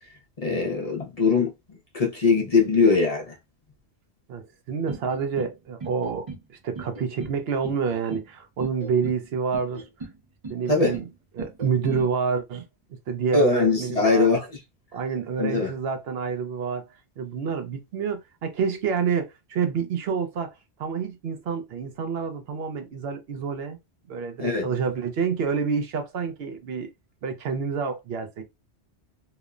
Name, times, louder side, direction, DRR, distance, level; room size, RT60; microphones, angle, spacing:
voice 1, 0.4-1.5 1.9-3.3 10.7-11.0 13.3-14.5 15.4-15.7 24.4-24.7, left 4 dB, 40° left, 0.6 m, -21 dB
voice 2, 4.3-9.9 10.5-11.1 11.3-12.7 13.1-14.3 14.9-16.9 17.2-20.5 20.8-23.8 24.1-26.9 27.2-28.4, right 6 dB, 70° right, 0.8 m, -28 dB
sound 1, 4.9-5.5 5.8-6.4 6.7-7.4 7.6-8.3 8.6-9.2 9.5-10.1 10.4-11.1 11.4-12.0, right 3 dB, 40° right, 0.6 m, -37 dB
2.9 x 2.0 x 2.4 m
omnidirectional pair, 1.1 m